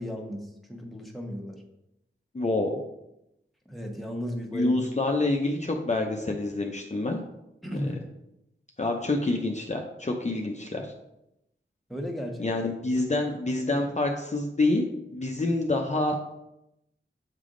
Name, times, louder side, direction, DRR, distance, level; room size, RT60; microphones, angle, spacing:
voice 1, 0.0-1.6 3.7-4.8 7.6-7.9 11.9-12.5, equal, ahead, 1 dB, 1.1 m, -35 dB
voice 2, 2.3-2.8 4.5-7.2 7.7-7.8 8.8-10.9 12.4-14.8 15.1-16.2, left 2 dB, 35° left, 1 dB, 0.6 m, -27 dB
7.4 x 3.4 x 3.8 m, 0.86 s
wide cardioid pair, 50°, 20 cm